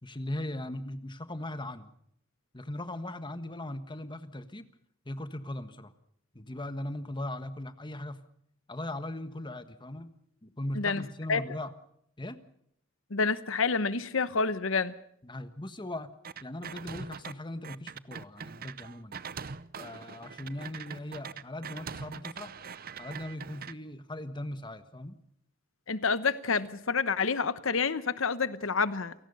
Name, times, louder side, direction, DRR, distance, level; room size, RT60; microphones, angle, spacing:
voice 1, 0.0-1.9 2.5-4.7 5.0-5.9 6.3-8.2 8.7-10.1 10.4-11.7 12.2-12.4 15.2-16.1 16.4-19.2 19.8-22.5 23.0-25.2, left 1 dB, 25° left, 1.5 m, -39 dB
voice 2, 13.1-14.9 25.9-29.1, left 5 dB, 70° left, 1.0 m, -28 dB
sound 1, 16.2-17.3 17.6-23.7, right 6 dB, 45° right, 0.8 m, -42 dB
29.0 x 18.0 x 5.5 m
head